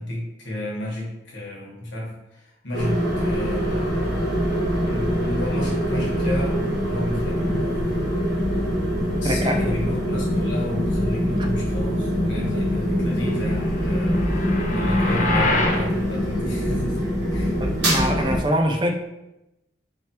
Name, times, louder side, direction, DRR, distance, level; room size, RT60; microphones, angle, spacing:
voice 1, 0.0-4.2 4.9-7.8 9.2-17.0 17.3-17.6, left 1 dB, 90° left, -3 dB, 1.3 m, -32 dB
kettle D monaural kitchen, 2.7-18.4, equal, 65° right, 1.3 m, -23 dB
voice 2, 9.2-9.6 17.6-18.9, equal, 25° right, 3 dB, 0.4 m, -23 dB
sound 1, 13.6-15.8, left 2 dB, 45° left, 0.6 m, -25 dB
4.5 x 3.3 x 2.9 m, 0.92 s
head